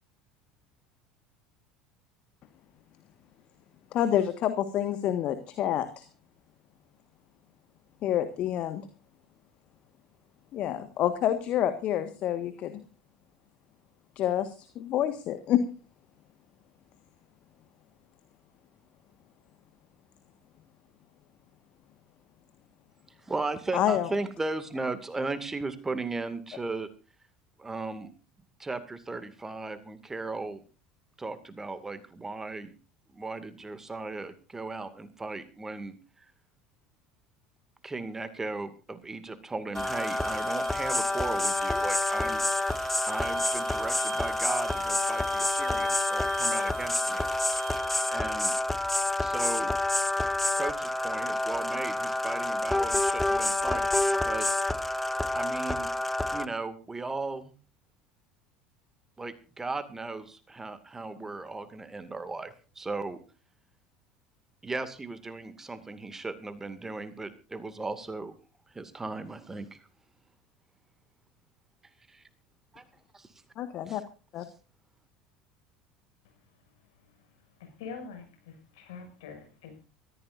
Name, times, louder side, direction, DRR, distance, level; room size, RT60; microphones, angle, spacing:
voice 1, 3.9-6.0 8.0-8.8 10.5-12.8 14.1-15.6 23.7-24.1 73.6-74.0 74.3-74.4, left 11 dB, 45° left, 10 dB, 1.6 m, -28 dB
voice 2, 23.2-26.9 27.6-28.1 28.6-30.6 31.2-32.7 33.1-36.3 37.8-42.4 43.1-47.3 48.1-48.5 49.2-49.7 50.5-53.9 54.2-54.5 55.3-55.9 56.3-57.5 59.2-63.2 64.6-68.3 68.7-69.8 72.1-72.2 72.7-72.8 73.1-73.3 73.9-74.0, right 3 dB, 15° right, 11 dB, 2.2 m, -36 dB
sound 1, 39.7-56.5, left 2 dB, 5° left, 0.9 m, -28 dB
sound 2, 39.7-49.0, right 11 dB, 65° right, 3.2 m, -46 dB
voice 3, 77.8-79.8, left 5 dB, 65° left, 5 dB, 6.3 m, -44 dB
24.0 x 15.0 x 2.6 m, 0.35 s
figure-of-eight pair, 70°, 3 cm